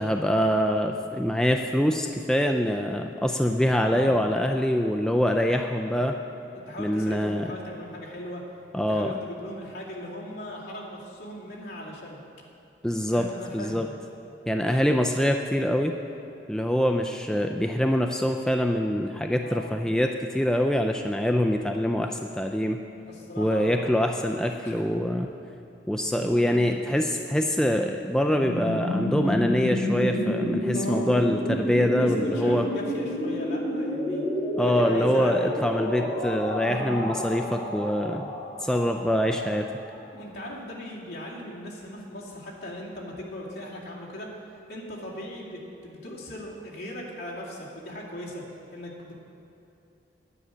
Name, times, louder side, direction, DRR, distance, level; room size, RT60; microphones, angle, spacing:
voice 1, 0.0-6.2 6.8-7.5 8.7-9.1 12.8-13.3 13.5-13.9 14.5-15.9 16.5-22.8 23.4-25.3 25.9-32.7 34.6-38.3 38.6-39.7, equal, 5° left, 3 dB, 0.3 m, -24 dB
voice 2, 3.7-4.3 6.5-8.4 8.9-12.2 13.1-13.9 19.4-19.8 23.1-24.1 24.5-24.8 26.2-26.7 30.7-31.2 32.0-34.2 34.6-35.5 36.0-36.2 36.6-37.0 40.1-44.3 44.7-48.4 48.7-49.1, left 1 dB, 65° left, -5 dB, 2.4 m, -39 dB
sound 1, 28.2-39.9, left 1 dB, 25° left, 2.3 m, -30 dB
9.8 x 9.1 x 6.2 m, 2.8 s
head